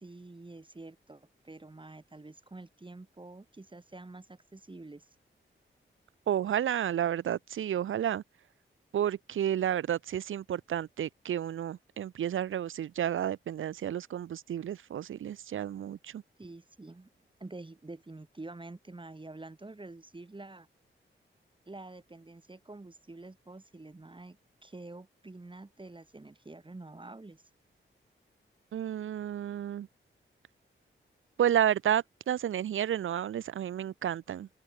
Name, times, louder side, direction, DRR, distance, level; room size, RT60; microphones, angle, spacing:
voice 1, 0.0-5.1 16.4-17.1 17.4-20.7 21.7-24.4 24.6-27.4, right 2 dB, 25° right, 1.3 m, -47 dB
voice 2, 6.3-8.2 8.9-16.2 28.7-29.9 31.4-34.5, right 10 dB, 75° right, 0.5 m, -31 dB
open air
cardioid pair, 55°, 21 cm